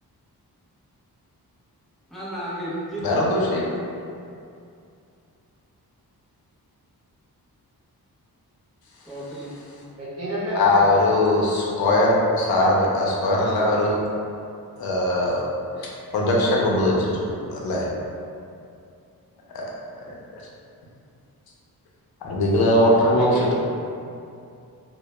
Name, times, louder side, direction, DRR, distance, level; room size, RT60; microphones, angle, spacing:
voice 1, 2.1-3.6 9.1-9.5, equal, ahead, -9 dB, 0.5 m, -33 dB
voice 2, 3.0-3.6 10.6-14.0 14.8-15.5 15.8-17.1 17.5-17.9 19.5-19.7 22.2-23.5, left 1 dB, 80° left, -3 dB, 0.6 m, -20 dB
voice 3, 10.0-11.0 23.0-23.5, equal, 45° right, -9 dB, 0.8 m, -29 dB
2.1 x 2.1 x 2.9 m, 2.5 s
wide cardioid pair, 150°, 36 cm